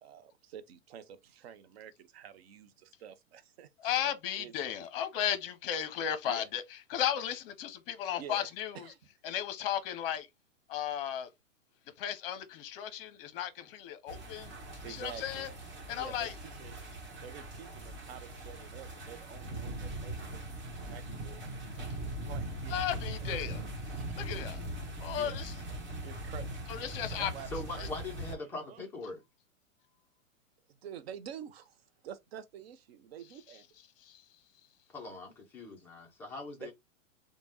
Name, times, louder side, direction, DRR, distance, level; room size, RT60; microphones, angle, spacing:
voice 1, 0.0-3.7 4.0-4.5 6.2-6.5 8.2-8.5 8.7-9.0 14.8-15.5 15.9-16.9 17.2-20.4 20.9-21.4 22.2-22.8 23.4-23.5 25.1-25.4 26.0-26.5 26.7-27.9 28.3-28.8 30.7-33.7 36.6-36.7, right 8 dB, 50° right, 0.6 m, -48 dB
voice 2, 3.8-8.9 9.2-10.3 10.7-11.3 12.0-14.5 14.8-15.5 15.9-16.3 22.7-23.6 24.2-24.6 25.0-25.5 26.7-27.3 27.8-27.9 34.0-34.2, left 10 dB, 45° left, 0.7 m, -35 dB
sound 1, 14.1-28.4, right 1 dB, 30° right, 1.3 m, -41 dB
voice 3, 27.5-29.2 34.9-36.7, left 3 dB, 5° left, 0.3 m, -41 dB
3.2 x 2.2 x 2.8 m
hypercardioid pair, 115°, 40 cm